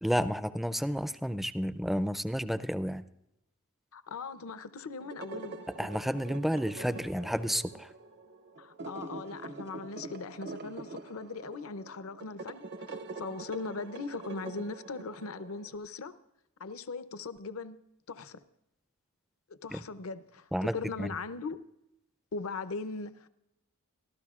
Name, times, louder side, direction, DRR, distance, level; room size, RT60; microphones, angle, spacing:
voice 1, 0.0-3.0 5.8-7.9 19.7-19.8 20.5-21.1, equal, ahead, 0.4 m, -31 dB
voice 2, 3.9-5.6 8.6-16.1 16.6-17.8 18.1-18.4 19.5-21.6 22.3-23.3, left 4 dB, 75° left, 0.6 m, -39 dB
sound 1, 5.0-15.8, right 3 dB, 55° right, 0.7 m, -45 dB
26.0 x 12.5 x 2.4 m
head